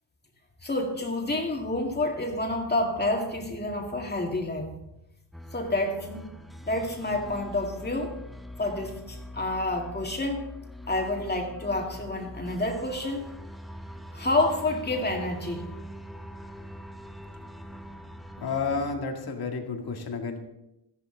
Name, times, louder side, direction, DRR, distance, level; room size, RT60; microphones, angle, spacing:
voice 1, 0.6-4.7 5.5-6.3 6.6-8.1 8.6-10.4 10.9-13.2 14.1-15.7, left 2 dB, 25° left, 1 dB, 2.2 m, -28 dB
sound 1, 5.3-19.0, equal, ahead, 0.8 m, -43 dB
voice 2, 18.4-20.4, left 4 dB, 60° left, 3 dB, 2.2 m, -31 dB
14.0 x 11.0 x 3.9 m, 0.87 s
cardioid pair, 100°, 42 cm